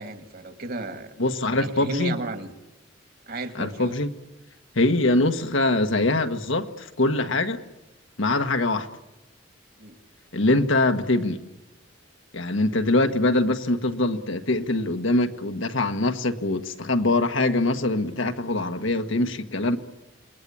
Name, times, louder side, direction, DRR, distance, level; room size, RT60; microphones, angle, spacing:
voice 1, 0.0-1.1 1.5-2.5 3.3-4.0 4.9-5.0 9.8-10.0, right 2 dB, 50° right, 1.9 m, -34 dB
voice 2, 1.2-2.2 3.6-4.1 4.7-7.6 8.2-8.9 10.3-11.4 12.3-19.8, left 2 dB, 75° left, 1.5 m, -23 dB
28.0 x 20.5 x 8.7 m
head